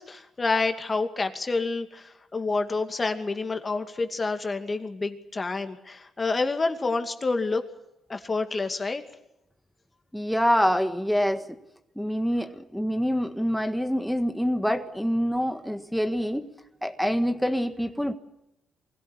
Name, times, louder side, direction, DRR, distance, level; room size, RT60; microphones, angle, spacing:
voice 1, 0.0-7.6 8.1-9.0, left 3 dB, 30° left, 7 dB, 2.5 m, -28 dB
voice 2, 10.1-11.5 12.0-16.5 16.8-18.1, equal, ahead, 7 dB, 1.6 m, -26 dB
24.0 x 16.5 x 9.8 m, 0.88 s
cardioid pair, 90°, 0 cm